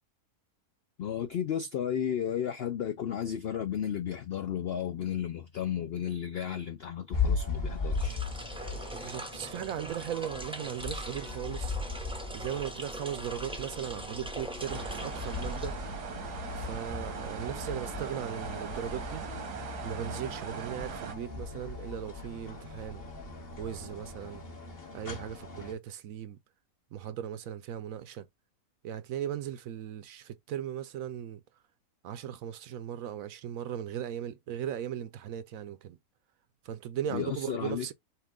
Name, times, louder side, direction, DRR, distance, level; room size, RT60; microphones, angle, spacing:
voice 1, 1.0-8.2 37.1-37.9, left 9 dB, 80° left, 0.5 m, -33 dB
sound 1, 7.1-25.7, left 4 dB, 40° left, 1.4 m, -38 dB
sound 2, 7.8-16.2, right 1 dB, 5° right, 0.4 m, -42 dB
voice 2, 8.9-11.8 12.3-15.8 16.5-19.2 19.8-23.0 23.6-24.4 24.9-26.4 26.9-28.3 28.8-31.4 32.0-36.0 36.6-37.9, right 10 dB, 70° right, 0.9 m, -37 dB
sound 3, 14.6-21.1, right 6 dB, 90° right, 1.6 m, -40 dB
5.7 x 2.5 x 3.6 m
omnidirectional pair, 1.6 m